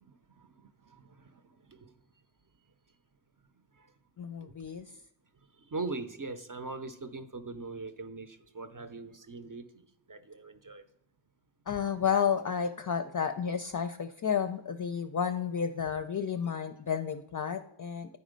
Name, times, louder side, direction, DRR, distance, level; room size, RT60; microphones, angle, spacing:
voice 1, 0.0-1.4 1.7-1.9 3.8-3.9 4.4-4.5 5.7-10.8, right 3 dB, 45° right, 0.6 m, -41 dB
voice 2, 4.2-4.9 11.7-18.2, left 7 dB, 45° left, 0.4 m, -31 dB
9.7 x 4.1 x 5.1 m
wide cardioid pair, 45°, 47 cm